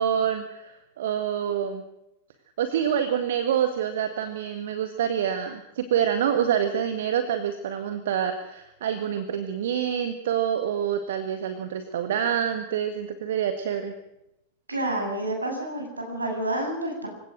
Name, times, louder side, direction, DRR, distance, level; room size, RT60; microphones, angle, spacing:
voice 1, 0.0-1.8 2.6-13.9, right 9 dB, 60° right, 9 dB, 1.8 m, -27 dB
voice 2, 14.7-17.1, right 1 dB, 80° right, 2 dB, 7.4 m, -29 dB
27.0 x 16.5 x 6.4 m, 0.84 s
figure-of-eight pair, 90°, 0 cm